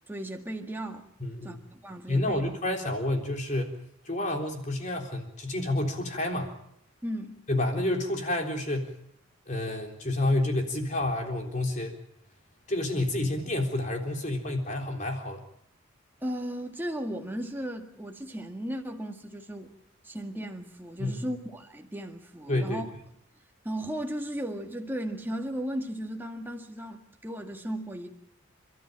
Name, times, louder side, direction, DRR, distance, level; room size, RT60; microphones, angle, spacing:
voice 1, 0.1-1.1 1.4-2.4 7.0-7.4 16.2-19.7 20.0-22.9 23.6-28.1, right 1 dB, 10° right, 1.9 m, -36 dB
voice 2, 1.2-1.6 2.1-3.7 4.1-6.5 7.5-8.9 9.5-12.0 12.7-15.4 21.0-21.2 22.5-22.8, left 1 dB, 35° left, 3.6 m, -29 dB
30.0 x 13.5 x 9.0 m
head